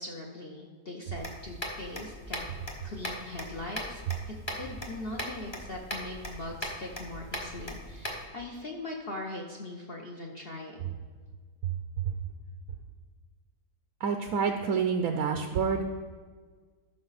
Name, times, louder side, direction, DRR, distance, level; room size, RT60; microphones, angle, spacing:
voice 1, 0.0-2.5 2.8-4.0 4.3-10.8, left 2 dB, 45° left, 0 dB, 0.8 m, -40 dB
sound 1, 1.1-8.2, equal, 20° left, 1.0 m, -39 dB
voice 2, 14.0-15.8, right 6 dB, 65° right, 5 dB, 0.9 m, -28 dB
13.5 x 6.0 x 4.1 m, 1.5 s
omnidirectional pair, 2.0 m